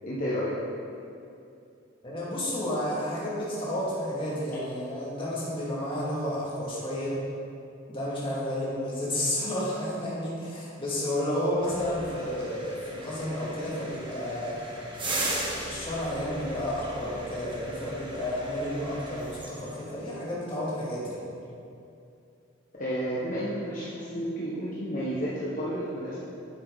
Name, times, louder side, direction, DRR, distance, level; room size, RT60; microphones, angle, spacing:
voice 1, 0.0-0.5 22.8-26.2, equal, 45° left, -8 dB, 1.3 m, -31 dB
voice 2, 2.0-7.2 7.9-14.7 15.0-21.2, left 1 dB, 30° left, -7 dB, 2.3 m, -31 dB
sound 1, 11.6-19.9, right 1 dB, 25° right, 1.5 m, -38 dB
9.6 x 7.3 x 4.0 m, 2.6 s
head